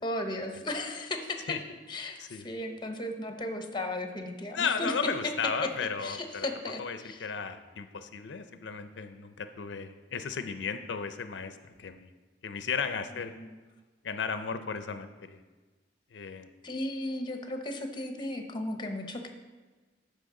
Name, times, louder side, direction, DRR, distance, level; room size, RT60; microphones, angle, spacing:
voice 1, 0.0-1.4 1.9-4.9 6.0-7.3 13.3-13.5 16.6-19.3, left 1 dB, 25° left, 5 dB, 0.8 m, -35 dB
voice 2, 4.5-6.5 6.8-12.1 12.4-13.4 14.0-15.4 16.1-16.5, left 5 dB, 90° left, 10 dB, 0.5 m, -35 dB
13.0 x 5.3 x 3.8 m, 1.3 s
head